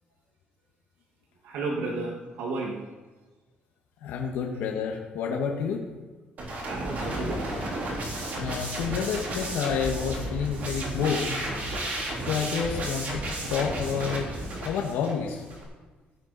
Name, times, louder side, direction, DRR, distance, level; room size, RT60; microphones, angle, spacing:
voice 1, 1.4-2.8 6.6-7.6, right 3 dB, 85° right, -1 dB, 1.6 m, -32 dB
voice 2, 4.0-5.8 8.4-11.4 12.3-14.3 14.6-15.4, left 6 dB, 85° left, 0 dB, 1.4 m, -29 dB
sound 1, 6.4-15.6, right 1 dB, 50° right, 3.8 m, -33 dB
15.0 x 10.5 x 4.0 m, 1.3 s
cardioid pair, 135°, 3 cm